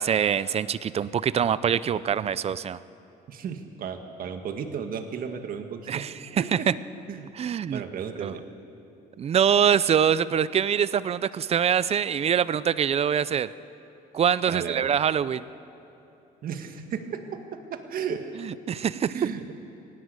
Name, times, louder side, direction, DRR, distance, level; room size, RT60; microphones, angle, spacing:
voice 1, 0.0-2.8 5.9-6.8 7.3-7.8 8.2-8.3 9.2-13.5 14.1-15.5 18.4-19.3, right 8 dB, 35° right, 18 dB, 0.6 m, -24 dB
voice 2, 3.3-6.1 6.4-6.7 7.1-7.3 7.7-8.4 14.5-14.8 16.4-18.2 19.1-19.5, right 7 dB, 60° right, 6 dB, 1.8 m, -34 dB
18.5 x 17.0 x 8.2 m, 2.9 s
cardioid pair, 110°, 17 cm